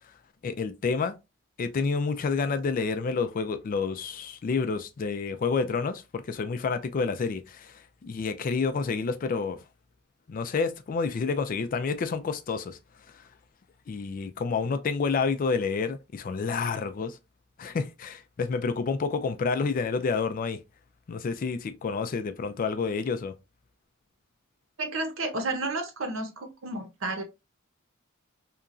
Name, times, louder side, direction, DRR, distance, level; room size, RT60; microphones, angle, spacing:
voice 1, 0.4-1.1 1.6-7.7 8.0-9.6 10.3-12.8 13.9-17.2 17.6-20.6 21.1-23.3, left 4 dB, 40° left, 0.3 m, -29 dB
voice 2, 24.8-27.2, right 2 dB, 65° right, 0.8 m, -31 dB
2.9 x 2.4 x 2.5 m
head